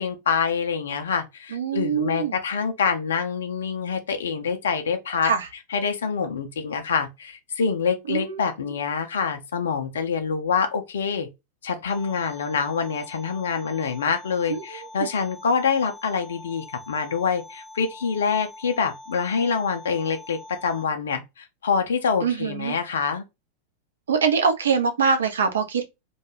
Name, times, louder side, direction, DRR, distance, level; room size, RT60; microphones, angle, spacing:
voice 1, 0.0-5.3 5.7-11.3 11.6-23.2, left 6 dB, 65° left, 0.4 m, -26 dB
voice 2, 1.5-2.4 5.2-5.5 8.1-8.7 14.5-15.1 22.2-22.7 24.1-25.9, right 6 dB, 65° right, 0.5 m, -24 dB
sound 1, 11.9-20.8, left 2 dB, 10° right, 0.6 m, -44 dB
2.3 x 2.2 x 3.0 m
figure-of-eight pair, 90°, 0 cm